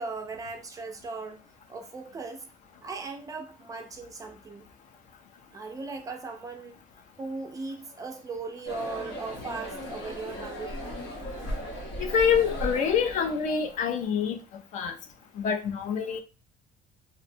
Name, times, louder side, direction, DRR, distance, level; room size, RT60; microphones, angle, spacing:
voice 1, 0.0-1.4 1.7-2.5 2.8-4.6 5.5-6.8 7.2-10.8, right 4 dB, 20° right, 0.3 m, -38 dB
sound 1, 8.7-13.9, equal, 85° left, 1.0 m, -37 dB
voice 2, 12.0-14.4 14.7-14.9 15.4-16.2, left 7 dB, 50° left, 0.4 m, -26 dB
2.5 x 2.1 x 2.6 m
cardioid pair, 155°, 16 cm